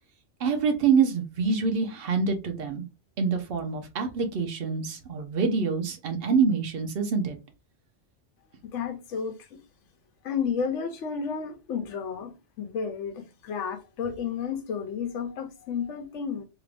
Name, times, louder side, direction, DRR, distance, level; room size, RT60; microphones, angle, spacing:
voice 1, 0.4-2.8 3.2-7.4, right 5 dB, 55° right, 0.9 m, -26 dB
voice 2, 8.6-9.6 10.2-16.4, left 6 dB, 85° left, 1.0 m, -32 dB
3.0 x 2.5 x 3.3 m
omnidirectional pair, 1.2 m